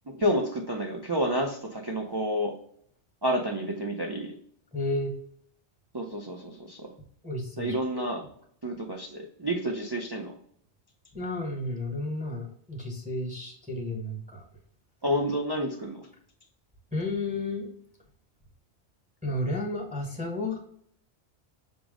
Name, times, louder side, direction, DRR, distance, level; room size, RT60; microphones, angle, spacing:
voice 1, 0.1-2.5 3.2-4.3 5.9-6.9 7.6-8.2 8.6-10.3 15.0-16.0, equal, 40° right, 0 dB, 0.3 m, -29 dB
voice 2, 4.7-5.1 7.2-7.8 11.1-14.4 16.9-17.7 19.2-20.6, left 2 dB, 5° right, -1 dB, 0.9 m, -32 dB
5.3 x 2.0 x 4.7 m, 0.65 s
omnidirectional pair, 1.1 m